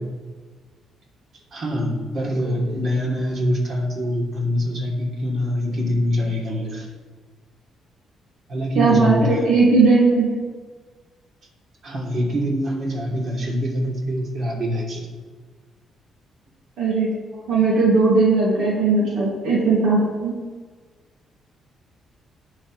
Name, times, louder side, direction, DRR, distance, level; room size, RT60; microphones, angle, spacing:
voice 1, 1.5-6.9 8.5-9.5 11.8-15.1 17.3-17.5, equal, 60° right, -3 dB, 3.2 m, -24 dB
voice 2, 8.7-10.3 16.8-17.1 17.5-20.4, right 3 dB, 85° right, -5 dB, 2.5 m, -18 dB
19.0 x 6.6 x 3.3 m, 1.4 s
cardioid pair, 90°, 0 cm